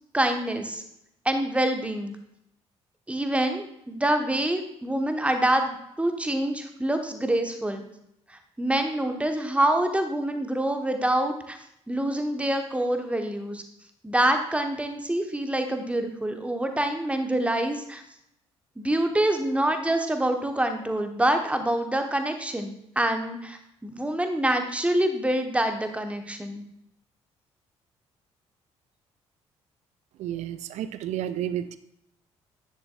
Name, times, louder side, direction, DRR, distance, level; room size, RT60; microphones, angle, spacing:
voice 1, 0.1-0.8 1.2-2.2 3.1-7.8 8.3-11.6 11.9-13.6 14.0-18.0 18.8-26.6, right 1 dB, 10° right, 6 dB, 1.1 m, -26 dB
voice 2, 30.2-31.8, right 11 dB, 50° right, 13 dB, 0.4 m, -31 dB
9.9 x 7.3 x 2.4 m, 0.77 s
figure-of-eight pair, 45°, 15 cm